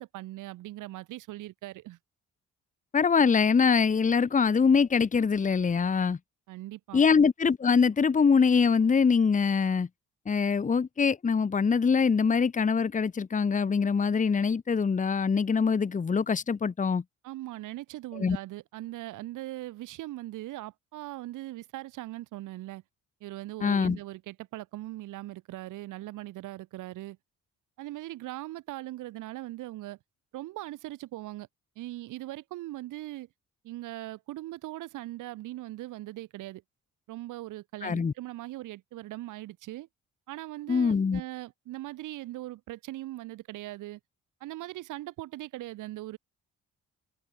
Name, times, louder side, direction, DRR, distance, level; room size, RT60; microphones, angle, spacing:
voice 1, 0.0-2.0 6.5-7.0 17.2-22.8 23.2-27.2 27.8-30.0 30.3-31.5 31.8-33.3 33.6-36.6 37.1-39.9 40.3-44.0 44.4-46.2, right 16 dB, 90° right, 2.2 m, -40 dB
voice 2, 2.9-6.2 6.9-9.9 10.3-17.0 18.2-18.4 23.6-24.0 37.8-38.1 40.7-41.2, left 5 dB, 25° left, 1.0 m, -24 dB
cardioid pair, 90°, 30 cm